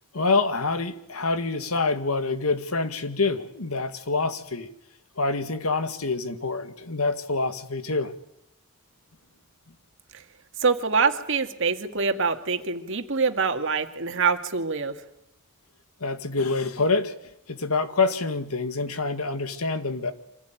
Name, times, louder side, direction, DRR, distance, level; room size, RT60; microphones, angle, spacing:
voice 1, 0.1-4.7 5.2-8.1 16.0-17.1 17.5-20.1, left 3 dB, 85° left, 10 dB, 2.0 m, -26 dB
voice 2, 10.6-14.9, right 5 dB, 60° right, 7 dB, 2.2 m, -25 dB
25.5 x 16.0 x 9.3 m, 0.82 s
head